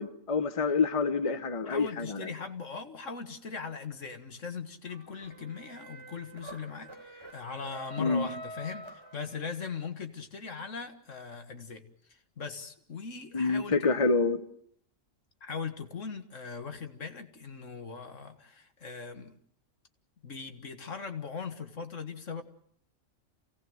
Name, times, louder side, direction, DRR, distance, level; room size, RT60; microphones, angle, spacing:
voice 1, 0.0-2.3 8.0-8.3 13.3-14.4, left 4 dB, 25° left, 9 dB, 1.0 m, -27 dB
voice 2, 1.7-11.8 12.1-14.1 15.4-19.3 20.2-22.4, left 5 dB, 75° left, 7 dB, 2.1 m, -40 dB
sound 1, 4.9-9.7, right 1 dB, 20° right, 3.4 m, -46 dB
27.5 x 17.5 x 7.9 m, 0.67 s
omnidirectional pair, 1.3 m